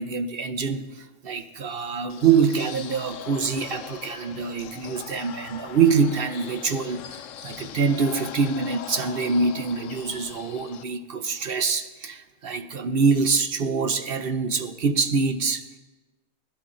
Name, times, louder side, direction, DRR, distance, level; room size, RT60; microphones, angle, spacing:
voice 1, 0.0-15.8, right 5 dB, 50° right, 8 dB, 0.8 m, -25 dB
sound 1, 2.1-10.8, left 10 dB, 70° left, 1.0 m, -40 dB
19.5 x 12.5 x 3.8 m, 1.1 s
omnidirectional pair, 1.5 m